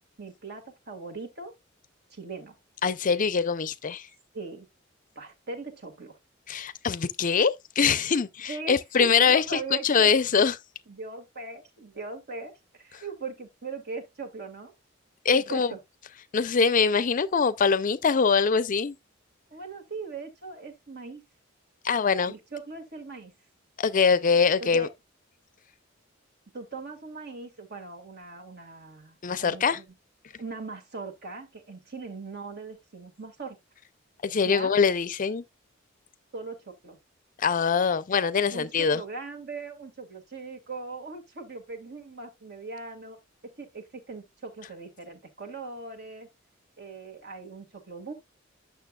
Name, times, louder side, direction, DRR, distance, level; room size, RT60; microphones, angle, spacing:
voice 1, 0.2-1.5 2.1-2.5 4.3-4.7 5.2-6.2 8.5-10.1 10.9-14.7 15.3-15.8 19.5-21.2 22.3-23.3 24.6-24.9 26.5-29.9 30.4-33.6 34.5-34.7 36.3-37.0 38.3-43.2 43.6-46.3 46.8-48.1, right 4 dB, 55° right, 2.0 m, -40 dB
voice 2, 2.8-4.0 6.5-9.4 9.8-10.6 15.2-15.7 16.3-19.0 21.8-22.3 23.8-24.9 29.2-29.8 34.2-35.4 37.4-39.0, left 5 dB, 40° left, 0.5 m, -23 dB
9.1 x 6.6 x 2.3 m
head